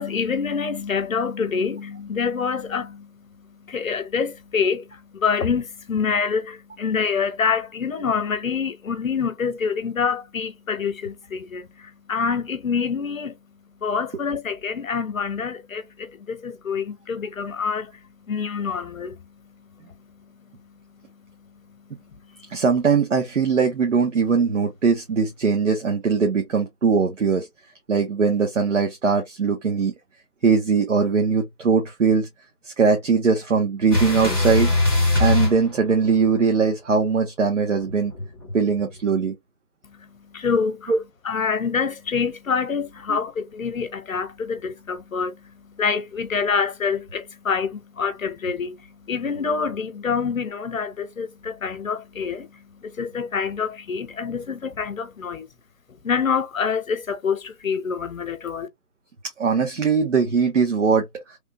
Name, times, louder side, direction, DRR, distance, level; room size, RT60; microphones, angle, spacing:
voice 1, 0.0-13.4 13.8-18.0 18.3-19.2 22.3-22.5 39.8-40.9 41.2-55.5 56.0-58.7, left 6 dB, 60° left, 0.9 m, -26 dB
voice 2, 22.5-27.5 27.9-29.9 30.4-32.3 32.6-34.7 35.2-38.1 38.5-39.3 40.9-41.0 43.1-43.2 59.4-61.4, right 5 dB, 50° right, 0.9 m, -21 dB
sound 1, 33.9-36.4 37.8-39.1, left 2 dB, 15° right, 0.8 m, -22 dB
3.3 x 2.1 x 2.8 m
figure-of-eight pair, 170°, 46 cm